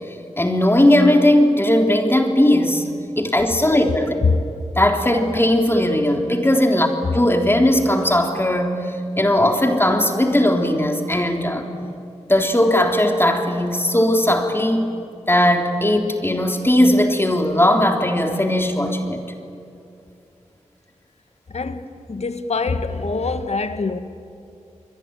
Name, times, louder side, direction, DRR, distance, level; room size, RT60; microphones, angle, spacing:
voice 1, 0.4-4.2 4.8-6.9 7.1-11.6 12.3-15.0 15.3-19.2, left 1 dB, 20° left, 3 dB, 3.5 m, -18 dB
voice 2, 11.7-12.0 21.5-24.0, left 4 dB, 60° left, 9 dB, 1.8 m, -24 dB
28.5 x 22.0 x 9.1 m, 2.6 s
cardioid pair, 45°, 13 cm